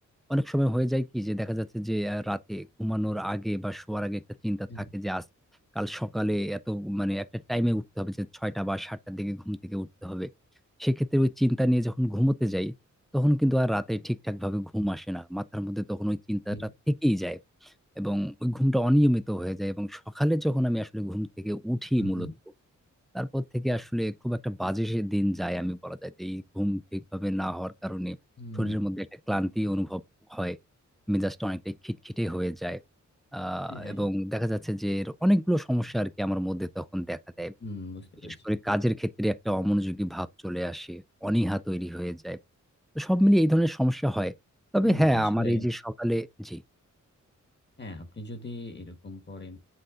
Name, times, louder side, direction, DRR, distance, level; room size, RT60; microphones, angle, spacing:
voice 1, 0.3-4.7 4.9-5.2 5.8-10.3 10.8-12.7 13.1-22.3 23.1-28.2 28.6-30.0 30.3-30.6 31.1-32.8 33.3-37.5 38.4-42.4 43.0-44.3 44.7-46.6, equal, ahead, 0.3 m, -28 dB
voice 2, 22.0-22.3 28.4-28.8 33.7-34.1 37.6-38.6 44.8-45.7 47.8-49.6, left 2 dB, 35° left, 1.5 m, -40 dB
7.8 x 3.9 x 3.7 m
wide cardioid pair, 135°, 31 cm